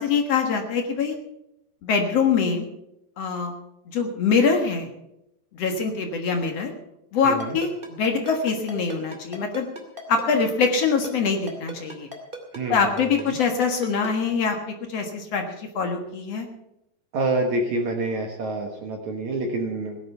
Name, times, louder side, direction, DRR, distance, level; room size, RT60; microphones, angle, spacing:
voice 1, 0.0-1.2 1.8-2.7 3.2-3.5 3.9-4.9 5.5-6.7 7.1-9.7 10.1-12.1 12.7-14.6 14.9-16.5, left 5 dB, 60° left, 3 dB, 1.7 m, -24 dB
voice 2, 7.2-7.6 12.5-13.4 17.1-20.0, right 2 dB, 60° right, 3 dB, 2.0 m, -27 dB
Ringtone, 7.4-14.1, right 1 dB, 25° right, 1.3 m, -36 dB
17.5 x 11.0 x 5.5 m, 0.85 s
omnidirectional pair, 5.1 m